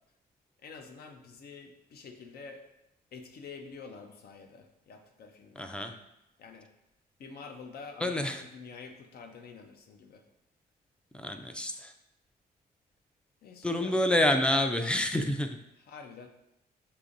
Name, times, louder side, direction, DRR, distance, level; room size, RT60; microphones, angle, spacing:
voice 1, 0.6-2.6 3.1-5.7 6.4-6.7 7.2-10.2 13.4-14.0 15.8-16.3, left 5 dB, 70° left, 5 dB, 0.6 m, -47 dB
voice 2, 5.6-5.9 8.0-8.4 11.1-11.9 13.6-15.6, left 1 dB, 5° left, 6 dB, 0.3 m, -28 dB
6.6 x 2.9 x 2.5 m, 0.86 s
cardioid pair, 140°, 17 cm